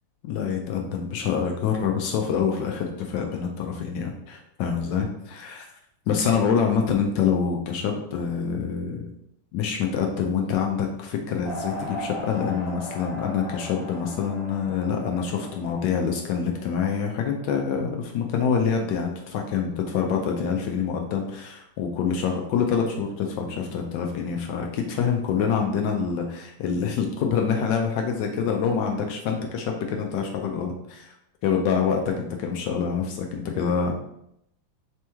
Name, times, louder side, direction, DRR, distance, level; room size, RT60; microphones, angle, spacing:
voice 1, 0.2-5.7 6.1-9.1 9.5-31.1 31.4-33.9, left 6 dB, 80° left, 2 dB, 1.2 m, -26 dB
sound 1, 11.4-17.4, left 2 dB, 40° left, 1.5 m, -38 dB
4.3 x 3.0 x 3.4 m, 0.77 s
omnidirectional pair, 2.0 m